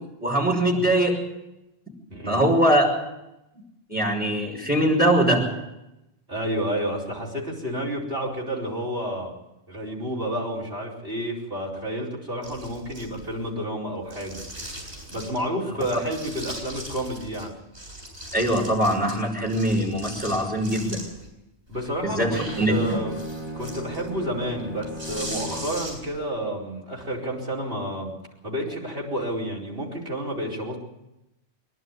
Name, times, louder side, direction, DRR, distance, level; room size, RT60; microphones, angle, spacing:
voice 1, 0.2-1.2 2.3-3.0 3.9-5.6 15.9-16.0 18.3-21.0 22.0-23.0, right 1 dB, 10° right, -1 dB, 6.0 m, -22 dB
voice 2, 2.1-2.4 6.3-9.3 9.7-14.4 15.1-17.5 21.7-22.4 22.7-23.2 23.5-28.1 28.4-30.8, right 1 dB, 60° right, -2 dB, 5.2 m, -30 dB
sound 1, 12.4-13.5 14.1-15.4 15.8-17.4 17.7-21.3 21.7-26.2, right 1 dB, 80° right, 8.3 m, -40 dB
Bowed string instrument, 22.0-25.9, equal, 35° right, 2.9 m, -37 dB
25.0 x 12.0 x 9.7 m, 0.92 s
omnidirectional pair, 1.1 m